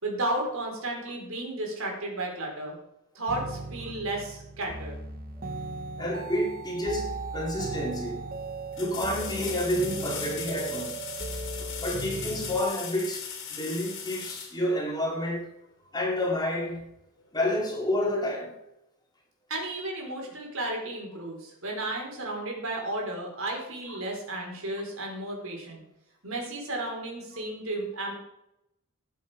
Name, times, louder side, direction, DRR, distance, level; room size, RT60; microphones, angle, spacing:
voice 1, 0.0-2.8 3.1-5.0 19.5-25.8 26.2-28.2, right 2 dB, 70° right, 4.9 m, -33 dB
sound 1, 3.3-12.6, right 3 dB, 45° right, 1.3 m, -37 dB
voice 2, 6.0-8.2 8.8-11.0 11.6-15.5 15.9-16.9 17.3-18.6, left 1 dB, 20° left, 2.8 m, -29 dB
sound 2, 7.4-7.5 8.7-15.3 18.2-18.3, left 7 dB, 60° left, 2.9 m, -38 dB
19.0 x 7.6 x 5.3 m
head